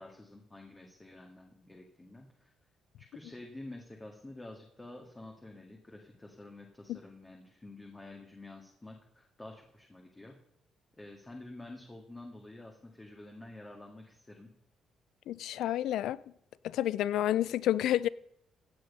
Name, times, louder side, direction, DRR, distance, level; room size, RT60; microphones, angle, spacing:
voice 1, 0.0-2.5 3.0-10.3 11.0-14.5, left 2 dB, 20° left, 1.9 m, -49 dB
voice 2, 15.3-16.2 16.6-18.1, left 12 dB, 80° left, 0.4 m, -29 dB
15.5 x 7.9 x 5.4 m
cardioid pair, 90°, 0 cm